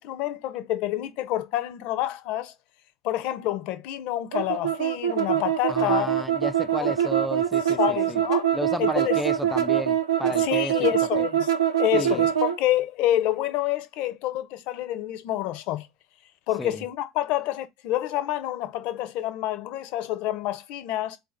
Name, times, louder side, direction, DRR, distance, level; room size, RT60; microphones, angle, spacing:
voice 1, 0.0-2.5 3.0-6.1 6.8-6.9 7.8-8.5 8.8-9.2 10.4-11.5 11.8-15.9 16.5-21.2, left 13 dB, 55° left, 0.6 m, -28 dB
sound 1, 4.3-12.6, right 10 dB, 80° right, 0.6 m, -24 dB
voice 2, 5.7-8.2 8.5-10.8 11.2-11.3 11.9-12.3 16.6-16.8, equal, ahead, 0.3 m, -32 dB
4.1 x 2.6 x 4.0 m
hypercardioid pair, 80°, 2 cm